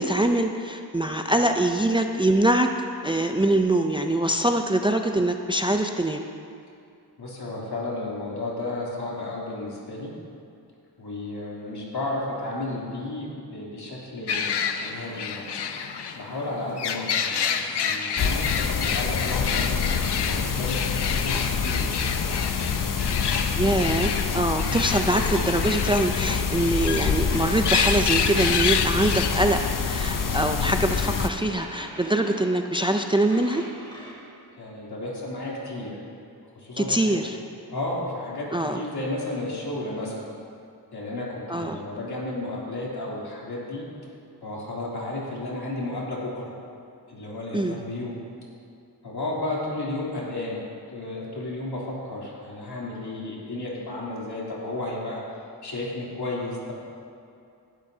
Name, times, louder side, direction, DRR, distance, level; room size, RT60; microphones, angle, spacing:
voice 1, 0.0-2.7 3.0-6.2 23.6-33.7 36.8-37.4 38.5-38.8 41.5-41.8 47.5-47.8, right 1 dB, 15° right, 5 dB, 0.4 m, -23 dB
voice 2, 7.2-10.1 11.0-15.5 16.2-21.9 23.0-23.6 34.6-36.0 36.5-37.1 37.7-40.3 40.9-43.8 44.4-46.5 47.1-48.2 49.0-50.6 50.9-55.2 55.6-56.7, left 2 dB, 70° left, -5 dB, 3.2 m, -33 dB
sound 1, 14.3-29.7, left 6 dB, 90° left, 0.7 m, -29 dB
sound 2, 18.2-31.3, left 6 dB, 55° left, 0.7 m, -26 dB
sound 3, 26.9-34.1, equal, 10° left, 3.3 m, -42 dB
18.5 x 12.0 x 2.8 m, 2.5 s
wide cardioid pair, 115°, 40 cm